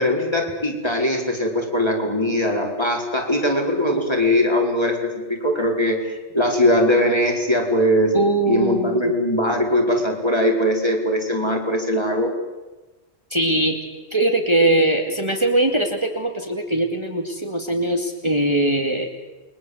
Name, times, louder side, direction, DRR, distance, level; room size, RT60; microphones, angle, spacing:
voice 1, 0.0-8.1 8.5-12.3, left 1 dB, 25° left, 1 dB, 4.7 m, -21 dB
voice 2, 8.1-9.2 13.3-13.8 14.1-19.1, right 1 dB, 25° right, 3 dB, 2.5 m, -21 dB
29.5 x 23.0 x 8.0 m, 1.2 s
omnidirectional pair, 1.1 m